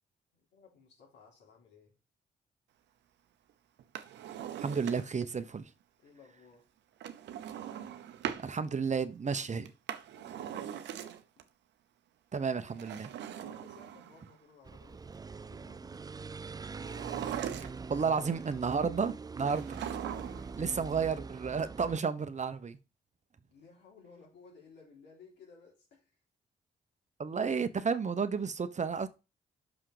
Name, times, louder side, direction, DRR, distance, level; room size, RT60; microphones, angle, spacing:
voice 1, 0.3-2.0 6.0-6.7 10.1-10.8 13.3-16.0 19.9-20.5 23.5-26.2, left 5 dB, 80° left, 3.9 m, -58 dB
Drawer open or close, 3.8-5.3 7.0-8.5 9.6-11.4 12.7-14.3 16.8-18.0 19.4-20.6 20.8-20.9, right 10 dB, 85° right, 0.8 m, -40 dB
voice 2, 4.6-5.7 8.4-9.7 12.3-13.1 17.9-19.8 20.6-22.8 27.2-29.1, right 5 dB, 40° right, 0.9 m, -32 dB
sound 1, 14.7-22.0, right 4 dB, 20° right, 0.3 m, -43 dB
6.3 x 5.7 x 4.9 m
supercardioid pair, 55°, 18 cm